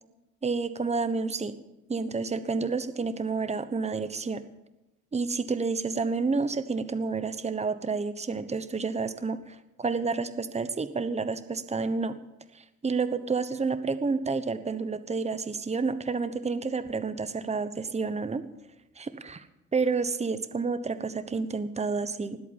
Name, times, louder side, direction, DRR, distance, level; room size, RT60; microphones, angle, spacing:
voice 1, 0.4-1.5 1.9-4.4 5.1-12.1 12.5-18.4 19.0-19.5 19.7-22.4, right 4 dB, 20° right, 11 dB, 1.1 m, -29 dB
19.5 x 8.3 x 7.3 m, 0.94 s
cardioid pair, 90°, 30 cm